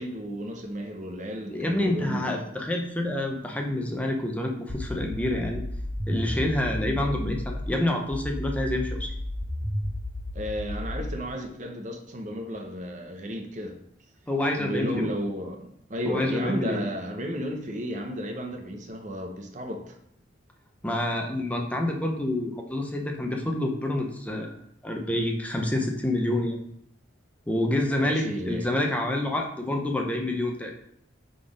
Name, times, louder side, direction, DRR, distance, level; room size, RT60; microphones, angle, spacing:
voice 1, 0.0-2.3 10.3-13.8 14.6-20.0 28.0-28.7, equal, 40° right, 0.8 m, -33 dB
voice 2, 1.5-5.6 6.1-9.1 14.3-15.1 16.0-16.8 20.8-24.5 24.8-26.6 27.5-30.7, left 1 dB, 5° left, 0.7 m, -27 dB
sound 1, 4.7-7.7 8.1-11.1, left 1 dB, 40° left, 1.8 m, -32 dB
5.9 x 3.9 x 4.9 m
head